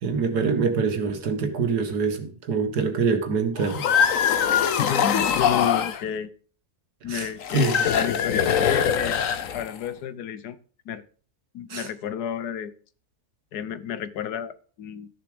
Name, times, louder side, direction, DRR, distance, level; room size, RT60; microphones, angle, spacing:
voice 1, 0.0-4.4 7.1-7.8 11.7-11.9, right 4 dB, 90° right, 8 dB, 1.9 m, -25 dB
sound 1, 3.6-6.0 7.4-9.9, left 8 dB, 60° left, 1.2 m, -23 dB
voice 2, 4.8-6.3 7.0-9.2 9.5-10.6 10.9-11.0 11.5-12.7 13.5-15.1, left 9 dB, 85° left, 15 dB, 1.4 m, -31 dB
13.0 x 7.0 x 5.0 m, 0.42 s
omnidirectional pair, 1.6 m